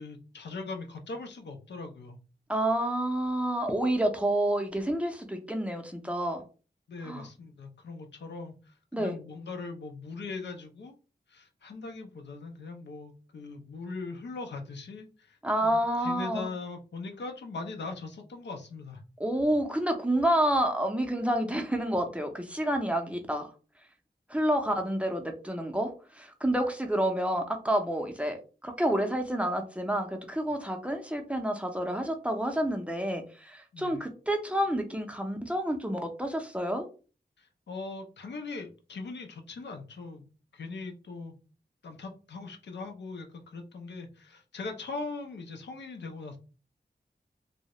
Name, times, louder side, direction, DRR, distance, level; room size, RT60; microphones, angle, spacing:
voice 1, 0.0-2.2 6.9-10.9 11.3-19.0 33.7-34.0 37.4-41.3 41.8-46.4, left 3 dB, 85° left, 4 dB, 0.5 m, -40 dB
voice 2, 2.5-6.4 7.0-7.2 8.9-9.2 15.4-16.5 19.2-23.5 24.3-25.9 26.1-28.4 28.6-36.8, right 1 dB, 5° right, 3 dB, 0.5 m, -29 dB
2.3 x 2.0 x 2.8 m, 0.35 s
wide cardioid pair, 80°, 18 cm